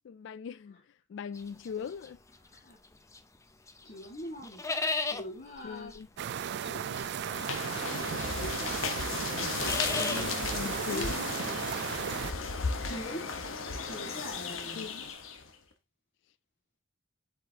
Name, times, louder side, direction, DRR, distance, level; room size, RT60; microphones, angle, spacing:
voice 1, 0.0-0.8 1.1-2.2 5.6-6.1 9.9-11.7 14.8-15.1, left 6 dB, 60° left, 0.3 m, -40 dB
sound 1, 1.3-3.4 3.7-15.1, left 3 dB, 15° left, 0.6 m, -39 dB
voice 2, 3.8-4.6 5.0-5.9 6.6-7.1 7.7-8.8 9.3-11.4 12.8-13.2 13.5-14.9, equal, 40° left, 1.9 m, -43 dB
sound 2, 6.2-12.3, right 8 dB, 55° right, 0.3 m, -35 dB
sound 3, 7.1-15.5, left 5 dB, 80° left, 1.2 m, -35 dB
7.9 x 4.9 x 2.8 m
head